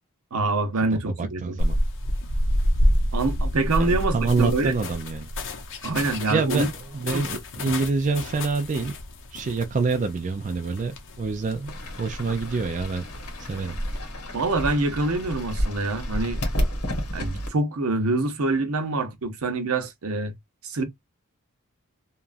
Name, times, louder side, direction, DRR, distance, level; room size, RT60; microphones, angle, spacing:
voice 1, 0.3-1.6 3.1-4.7 5.8-6.7 7.1-7.4 14.3-16.4 17.1-20.3 20.6-20.8, right 3 dB, 70° right, 0.7 m, -25 dB
voice 2, 0.9-1.8 3.8-5.3 6.3-6.6 6.9-8.9 9.3-13.0 13.4-13.8, right 4 dB, 35° right, 0.4 m, -26 dB
sound 1, 1.6-14.0, equal, 60° left, 0.7 m, -29 dB
Fowl / Bird, 11.7-17.5, equal, 85° left, 1.1 m, -31 dB
2.9 x 2.4 x 2.5 m
head